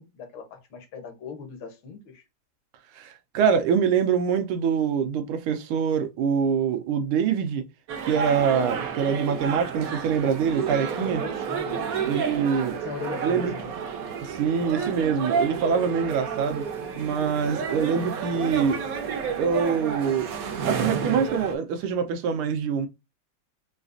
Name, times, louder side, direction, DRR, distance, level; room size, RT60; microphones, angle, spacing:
voice 1, 0.0-2.2 11.0-12.3 12.8-13.7, left 5 dB, 70° left, 1.7 m, -39 dB
voice 2, 3.0-7.6 8.1-11.2 12.0-12.8 13.2-13.5 14.2-16.6 17.0-18.8 19.4-20.3 20.7-22.9, right 7 dB, 90° right, 1.6 m, -24 dB
sound 1, 7.9-21.5, right 6 dB, 65° right, 0.9 m, -30 dB
4.9 x 2.4 x 2.5 m
omnidirectional pair, 2.3 m